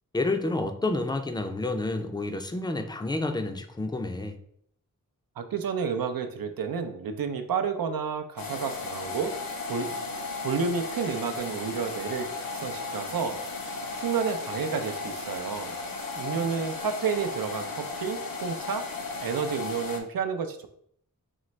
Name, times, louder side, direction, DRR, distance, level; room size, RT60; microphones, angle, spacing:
voice 1, 0.1-4.4, left 2 dB, 15° left, 6 dB, 0.4 m, -29 dB
voice 2, 5.4-9.4 9.7-9.9 10.4-13.4 14.0-15.7 16.2-18.9 19.2-20.7, right 6 dB, 90° right, 7 dB, 0.5 m, -30 dB
sound 1, 8.4-20.0, left 3 dB, 85° left, 0.8 m, -35 dB
3.9 x 3.2 x 3.1 m, 0.67 s
wide cardioid pair, 115°, 34 cm